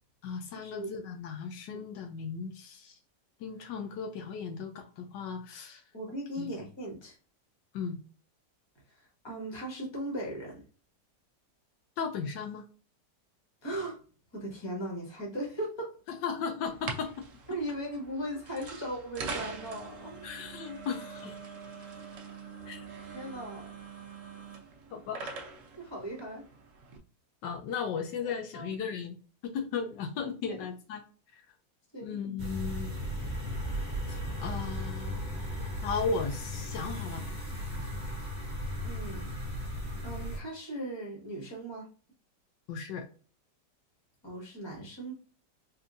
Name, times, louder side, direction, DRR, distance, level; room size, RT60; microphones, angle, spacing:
voice 1, 0.2-3.0 3.4-5.8 6.4-6.5 7.7-8.0 12.0-12.7 16.1-17.2 20.2-21.4 22.7-22.8 24.9-25.3 27.4-31.0 31.3-31.4 32.0-33.3 34.1-35.5 35.8-37.2 42.7-43.1, left 5 dB, 80° left, 6 dB, 1.3 m, -36 dB
voice 2, 5.9-7.2 8.9-10.6 13.6-14.0 14.3-16.0 17.5-20.2 23.1-23.7 25.8-26.5 28.2-28.7 30.5-30.7 31.9-32.2 38.8-39.3 40.0-41.9 44.2-45.1, right 1 dB, 15° left, -2 dB, 1.2 m, -38 dB
sound 1, 16.7-27.0, right 4 dB, 60° right, 0.9 m, -43 dB
sound 2, 32.4-40.4, equal, 25° right, 1.5 m, -36 dB
4.3 x 2.6 x 2.5 m, 0.37 s
omnidirectional pair, 1.9 m